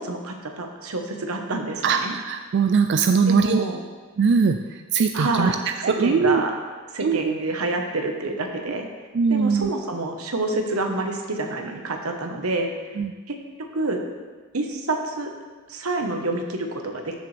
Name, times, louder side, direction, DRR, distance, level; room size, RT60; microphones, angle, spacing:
voice 1, 0.0-2.1 3.3-3.8 5.1-6.5 6.9-8.9 9.3-12.7 13.3-13.4 13.7-14.0 14.5-15.3 15.7-17.1, right 2 dB, 90° right, 3 dB, 1.2 m, -27 dB
voice 2, 1.8-3.6 4.2-5.5 5.8-6.4 7.0-7.3 9.1-9.7 13.0-13.1, right 5 dB, 55° right, 6 dB, 0.4 m, -21 dB
13.5 x 6.8 x 3.4 m, 1.4 s
head